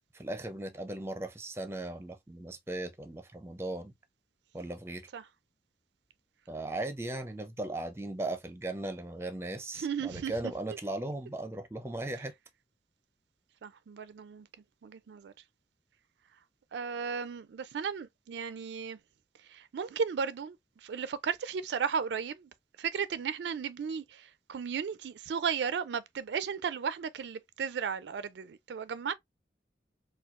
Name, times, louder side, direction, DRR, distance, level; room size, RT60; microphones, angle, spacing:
voice 1, 0.1-3.9 4.5-5.1 6.5-12.3, right 2 dB, 15° right, 0.5 m, -37 dB
voice 2, 9.7-10.5 13.6-14.5 14.8-15.3 16.7-19.0 19.5-20.6 20.8-22.5 22.8-29.1, right 6 dB, 80° right, 0.4 m, -35 dB
4.3 x 2.3 x 2.4 m
head